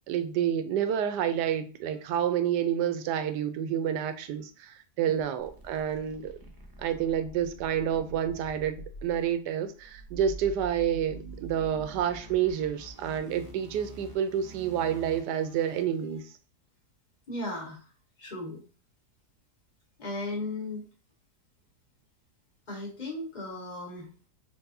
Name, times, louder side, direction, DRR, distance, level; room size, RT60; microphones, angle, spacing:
voice 1, 0.1-6.3 6.8-16.2, right 9 dB, 85° right, 1.2 m, -29 dB
sound 1, 5.4-16.2, right 3 dB, 35° right, 0.3 m, -46 dB
voice 2, 17.3-17.8 18.2-18.6 20.0-20.8 22.7-24.1, left 2 dB, 25° left, 1.5 m, -36 dB
4.6 x 3.3 x 2.6 m
omnidirectional pair, 1.8 m